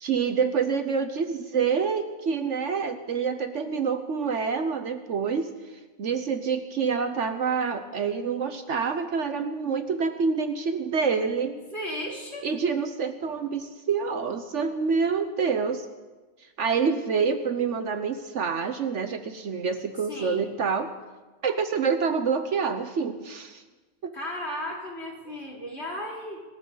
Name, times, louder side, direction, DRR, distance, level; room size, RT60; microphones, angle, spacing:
voice 1, 0.0-5.5 6.0-11.6 12.4-15.9 16.6-20.9 21.4-23.6 24.0-24.1, right 5 dB, 60° right, 9 dB, 1.1 m, -27 dB
voice 2, 11.6-12.5 20.1-20.5 24.1-26.4, left 1 dB, 50° left, -2 dB, 3.7 m, -35 dB
27.0 x 13.5 x 4.0 m, 1.3 s
omnidirectional pair, 1.5 m